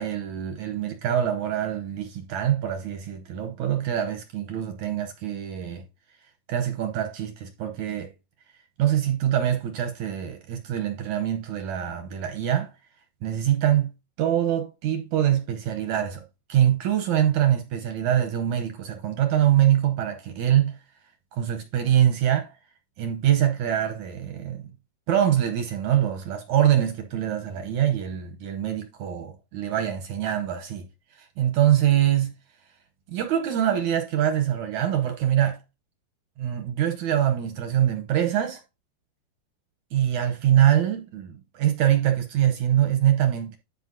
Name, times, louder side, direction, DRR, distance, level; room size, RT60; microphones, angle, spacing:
voice 1, 0.0-5.8 6.5-8.1 8.8-12.7 13.2-13.9 14.2-16.2 16.5-20.8 21.3-22.5 23.0-24.7 25.1-32.3 33.1-35.6 36.4-38.6 39.9-43.6, right 11 dB, 70° right, 1.9 m, -24 dB
12.0 x 5.0 x 2.6 m
omnidirectional pair, 4.3 m